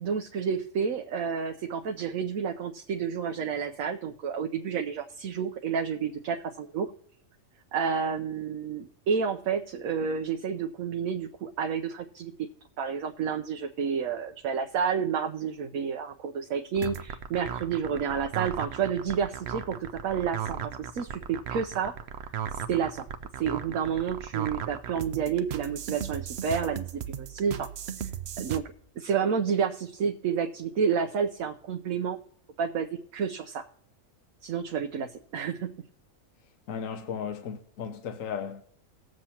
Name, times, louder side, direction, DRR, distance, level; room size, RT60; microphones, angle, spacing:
voice 1, 0.0-6.9 7.7-12.3 12.8-21.9 22.2-23.1 23.4-27.7 28.4-32.2 32.6-33.7 34.4-35.7, right 6 dB, 75° right, 1.1 m, -30 dB
sound 1, 16.7-28.6, right 8 dB, 60° right, 0.8 m, -36 dB
voice 2, 36.7-38.6, left 7 dB, 70° left, 1.1 m, -35 dB
19.5 x 7.7 x 2.9 m
omnidirectional pair, 1.5 m